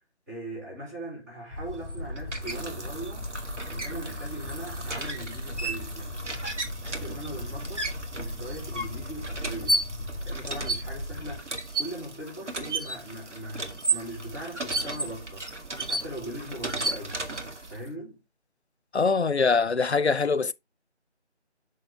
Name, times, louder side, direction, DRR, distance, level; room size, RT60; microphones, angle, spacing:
voice 1, 0.3-3.3 3.7-6.4 6.8-7.9 8.2-9.9 10.2-15.5 15.9-17.3 17.7-18.2, right 1 dB, 15° right, 2.4 m, -40 dB
sound 1, 1.5-11.4, left 1 dB, 10° left, 2.8 m, -38 dB
sound 2, 1.6-17.9, right 2 dB, 80° right, 1.9 m, -34 dB
voice 2, 18.9-20.5, left 4 dB, 65° left, 0.7 m, -23 dB
6.7 x 5.9 x 3.6 m
figure-of-eight pair, 165°, 35 cm